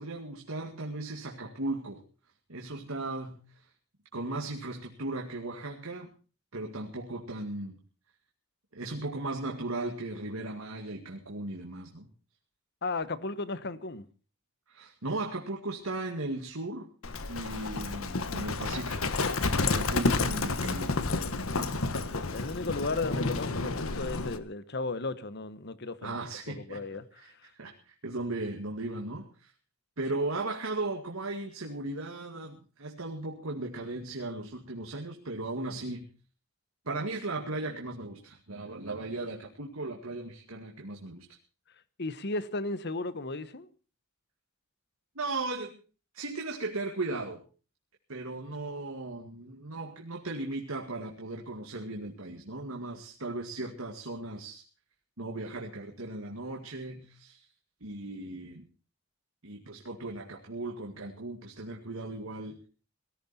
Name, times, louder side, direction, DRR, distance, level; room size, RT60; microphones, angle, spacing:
voice 1, 0.0-2.0 2.5-3.7 4.1-6.1 6.5-7.8 8.7-12.1 14.7-16.9 17.3-19.1 19.6-21.1 26.0-26.8 27.1-29.5 30.0-36.1 36.9-41.4 45.2-45.7 46.1-47.4 48.1-54.6 55.2-57.5 57.8-58.7 59.4-62.6, right 2 dB, 85° right, 2.2 m, -37 dB
voice 2, 12.8-14.1 21.9-26.2 26.5-27.5 42.0-43.7, left 3 dB, 55° left, 1.2 m, -35 dB
Livestock farm animals working animals, 17.0-24.4, left 3 dB, 85° left, 1.4 m, -30 dB
18.5 x 15.0 x 4.3 m
head